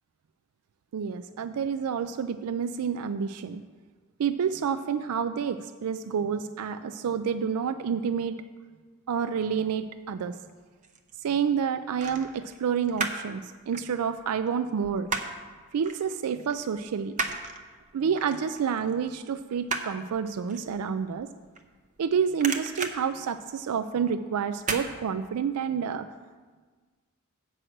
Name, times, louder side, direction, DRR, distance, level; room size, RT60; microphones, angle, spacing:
voice 1, 0.9-3.6 4.2-8.4 9.1-10.4 11.2-15.1 15.7-17.2 17.9-21.3 22.0-26.1, right 7 dB, 90° right, 11 dB, 0.4 m, -29 dB
sound 1, 10.5-11.1 12.0-13.3 13.6-15.5 15.9-16.0 16.4-22.0 22.3-24.0 24.6-24.9 25.3-25.4, right 4 dB, 35° right, 0.6 m, -34 dB
7.7 x 6.1 x 7.9 m, 1.4 s
head